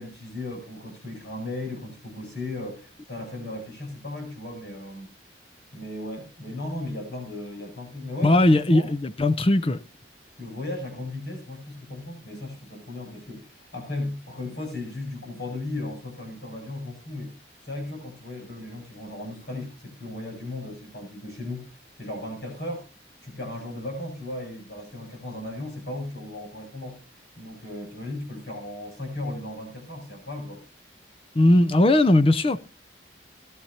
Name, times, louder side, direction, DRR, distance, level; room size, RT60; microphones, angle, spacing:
voice 1, 0.0-5.1 5.7-8.9 10.4-17.4 17.6-22.9 23.2-27.0 27.4-30.6, left 1 dB, 65° left, 7.9 m, -36 dB
voice 2, 8.2-9.8 31.3-32.6, left 1 dB, 30° left, 0.5 m, -19 dB
18.0 x 12.0 x 2.8 m
head